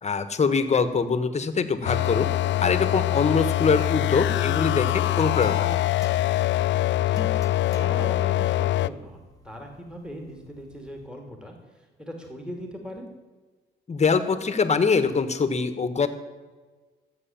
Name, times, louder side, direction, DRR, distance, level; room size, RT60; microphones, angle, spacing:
voice 1, 0.0-2.3 2.6-5.8 13.9-16.1, left 5 dB, 35° left, 10 dB, 1.4 m, -23 dB
sound 1, 1.8-8.9, left 14 dB, 65° left, 0.4 m, -24 dB
sound 2, 4.3-11.1, left 3 dB, 20° left, 1.8 m, -44 dB
voice 2, 7.7-9.2 9.4-13.1, equal, 5° right, 2 dB, 2.6 m, -39 dB
14.0 x 8.2 x 7.2 m, 1.4 s
cardioid pair, 90°, 20 cm